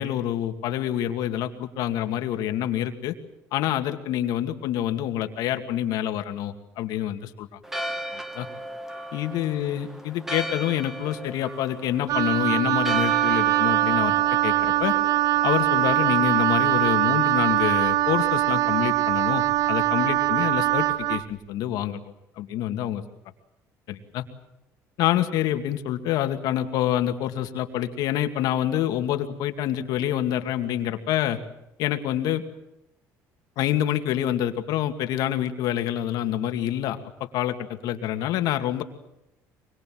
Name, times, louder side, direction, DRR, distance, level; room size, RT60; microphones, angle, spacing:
voice 1, 0.0-3.1 3.5-7.6 8.3-8.5 9.1-14.1 14.4-14.9 15.4-22.0 22.4-23.0 23.9-24.2 25.0-31.4 31.8-32.4 33.6-38.8, left 12 dB, 75° left, 7 dB, 2.5 m, -27 dB
Church bell, 7.6-16.5, right 1 dB, 5° right, 2.4 m, -37 dB
Wind instrument woodwind instrument, 12.1-21.2, right 14 dB, 60° right, 0.9 m, -22 dB
24.5 x 23.0 x 7.8 m, 0.89 s
cardioid pair, 110°, 7 cm